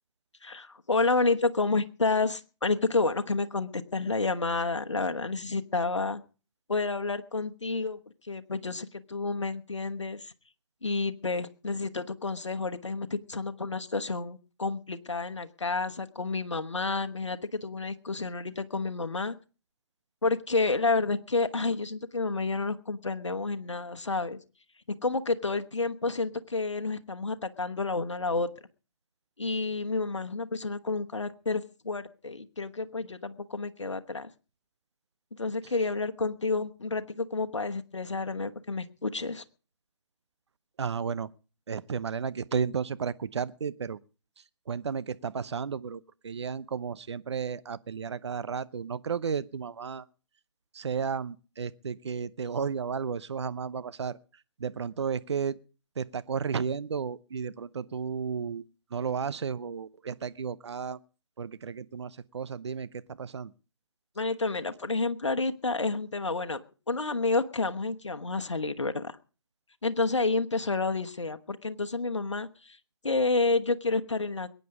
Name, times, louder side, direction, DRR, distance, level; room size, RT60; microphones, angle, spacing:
voice 1, 0.4-6.2 6.7-10.3 10.8-19.3 20.2-24.4 25.0-28.5 29.4-34.3 35.3-39.4 64.2-66.6 66.9-69.1 69.8-72.8 73.0-74.6, left 3 dB, 90° left, 1.3 m, -30 dB
voice 2, 40.8-41.3 41.7-44.0 44.7-50.0 50.7-54.2 54.6-55.6 56.0-58.6 58.9-61.0 61.4-63.5, right 6 dB, 70° right, 0.8 m, -33 dB
22.0 x 9.3 x 4.9 m
figure-of-eight pair, 140°, 15 cm